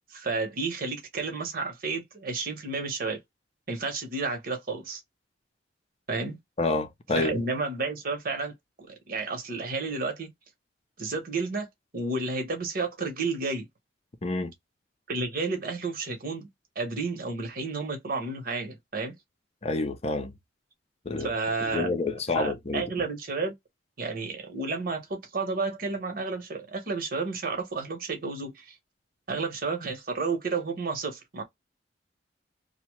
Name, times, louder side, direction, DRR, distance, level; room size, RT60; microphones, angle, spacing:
voice 1, 0.1-3.2 3.7-5.0 6.1-6.4 7.1-8.5 8.9-10.3 11.0-11.7 11.9-13.7 15.1-16.5 16.7-19.2 21.2-21.9 22.3-23.5 24.0-28.8 29.3-31.4, right 3 dB, 55° right, 1.0 m, -31 dB
voice 2, 6.6-7.4 14.2-14.5 19.6-20.3 21.1-21.3 21.7-22.9, left 3 dB, 35° left, 0.5 m, -28 dB
2.8 x 2.1 x 3.0 m
head